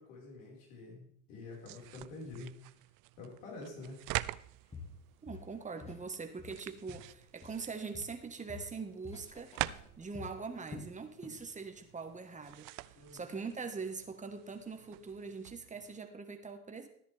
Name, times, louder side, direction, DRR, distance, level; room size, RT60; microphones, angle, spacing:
voice 1, 0.0-2.8 3.2-4.0 12.9-13.4, left 2 dB, 70° left, -2 dB, 5.5 m, -48 dB
sound 1, 1.5-16.0, right 19 dB, 55° right, 0.5 m, -46 dB
Walk footsteps, 4.1-4.3 4.7-6.1 6.4-7.7 7.9-11.5 11.8-12.0 12.5-12.6, left 4 dB, 15° left, 1.9 m, -50 dB
voice 2, 5.2-12.7 13.1-16.9, right 4 dB, 15° right, 6 dB, 1.6 m, -43 dB
13.0 x 10.5 x 3.6 m, 0.64 s
hypercardioid pair, 90°, 41 cm